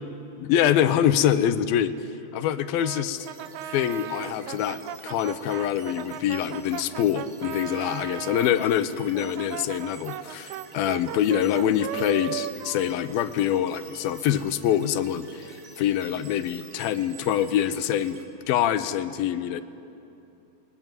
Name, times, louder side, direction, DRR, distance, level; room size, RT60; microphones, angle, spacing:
voice 1, 0.4-2.0 2.3-3.3 3.7-18.2 18.5-19.6, left 10 dB, 85° left, 11 dB, 2.7 m, -25 dB
Brass instrument, 2.8-8.5 9.1-13.9, right 11 dB, 75° right, 1.8 m, -37 dB
sound 1, 3.2-18.3, right 5 dB, 55° right, 3.7 m, -49 dB
29.0 x 22.0 x 9.1 m, 2.7 s
omnidirectional pair, 4.2 m